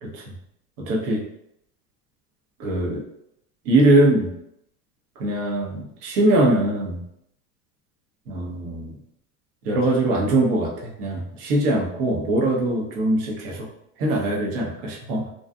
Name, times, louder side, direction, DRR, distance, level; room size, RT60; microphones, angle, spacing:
voice 1, 0.8-1.2 2.6-3.0 3.7-4.3 5.2-7.0 8.3-9.0 9.6-13.7 14.0-15.2, right 1 dB, 65° right, -1 dB, 0.9 m, -22 dB
2.6 x 2.3 x 2.3 m, 0.77 s
hypercardioid pair, 100°, 49 cm